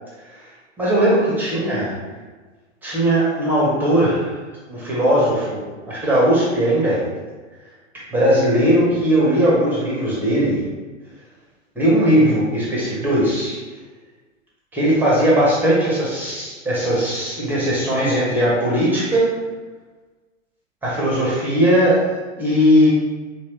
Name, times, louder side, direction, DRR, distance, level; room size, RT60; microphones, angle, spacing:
voice 1, 0.8-1.9 2.8-4.3 4.7-5.6 5.8-7.0 8.1-10.6 11.8-13.6 14.7-19.3 20.8-22.0 22.4-22.9, equal, 5° right, -6 dB, 0.4 m, -18 dB
2.9 x 2.2 x 2.9 m, 1.3 s
figure-of-eight pair, 105°, 39 cm